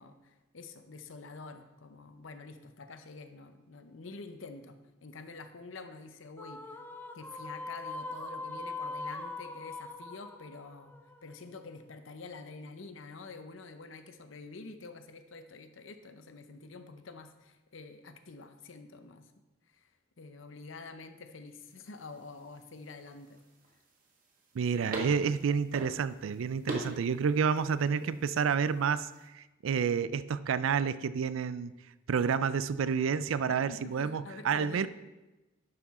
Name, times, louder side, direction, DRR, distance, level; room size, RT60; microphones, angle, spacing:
voice 1, 0.0-6.8 7.1-10.9 11.2-19.3 19.7-19.9 20.2-23.4 33.5-34.9, left 3 dB, 75° left, 9 dB, 0.8 m, -47 dB
sound 1, 6.4-11.8, left 3 dB, 10° left, 0.6 m, -42 dB
sound 2, 21.6-29.3, right 1 dB, 45° right, 1.5 m, -45 dB
voice 2, 24.5-29.1 29.3-31.7 32.1-34.9, right 6 dB, 80° right, 15 dB, 0.4 m, -29 dB
10.5 x 5.9 x 4.2 m, 1.1 s
head